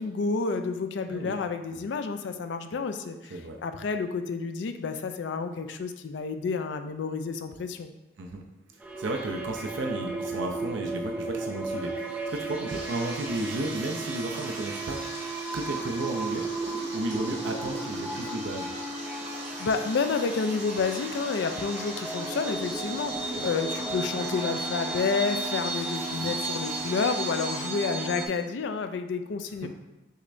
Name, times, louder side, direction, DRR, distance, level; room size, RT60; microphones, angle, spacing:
voice 1, 0.0-7.9 19.6-29.7, left 4 dB, 75° left, 8 dB, 0.4 m, -30 dB
sound 1, 8.8-28.3, right 2 dB, 5° right, 0.4 m, -34 dB
voice 2, 9.0-15.0 15.5-16.4 16.9-18.7 23.3-23.5 26.2-26.4 29.6-29.7, right 2 dB, 85° right, 2 dB, 0.5 m, -33 dB
Stream, 12.7-27.7, right 1 dB, 60° right, 1.6 m, -41 dB
6.4 x 3.2 x 2.5 m, 1.0 s
head